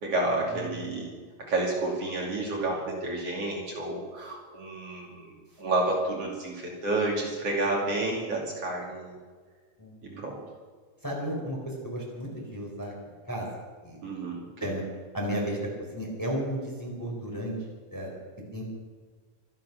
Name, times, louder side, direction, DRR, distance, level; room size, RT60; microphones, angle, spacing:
voice 1, 0.0-1.1 1.4-9.2 10.0-10.4 14.0-14.7, right 2 dB, 55° right, -2 dB, 3.5 m, -30 dB
voice 2, 9.8-10.2 11.0-12.9 13.3-13.5 13.8-14.0 14.6-14.8 15.1-17.5 17.9-18.1 18.5-18.6, equal, 5° left, -2 dB, 4.1 m, -33 dB
25.0 x 9.6 x 6.0 m, 1.5 s
omnidirectional pair, 3.4 m